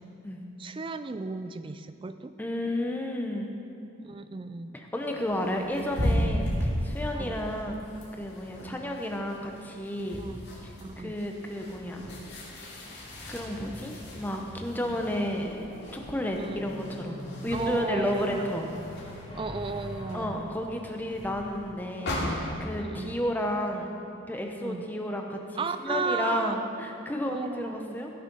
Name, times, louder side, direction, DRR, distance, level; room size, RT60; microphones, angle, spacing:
voice 1, 0.6-2.3 4.0-4.7 7.1-7.4 8.6-8.8 10.2-10.4 10.8-11.1 16.4-16.7 17.5-18.5 19.3-20.5 22.8-23.1 24.6-24.9 25.6-26.5 27.3-28.0, right 4 dB, 25° right, 11 dB, 0.3 m, -34 dB
voice 2, 2.4-3.5 4.7-7.8 8.1-10.2 10.6-10.7 11.0-12.1 13.3-18.6 20.1-23.9 24.3-28.1, left 1 dB, 10° left, 2 dB, 0.8 m, -32 dB
sound 1, 5.0-22.7, equal, 50° left, 2.5 m, -36 dB
sound 2, 11.7-20.3, left 1 dB, 25° left, 1.6 m, -44 dB
16.5 x 6.3 x 5.3 m, 2.7 s
head